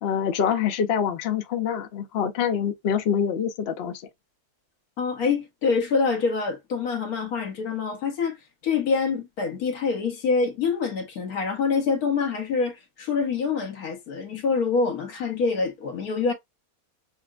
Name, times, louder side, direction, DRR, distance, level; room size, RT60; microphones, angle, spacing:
voice 1, 0.0-4.0, left 8 dB, 60° left, 0.7 m, -25 dB
voice 2, 5.0-8.4 8.6-16.3, left 5 dB, 80° left, 1.3 m, -25 dB
5.4 x 2.0 x 2.3 m
omnidirectional pair, 1.6 m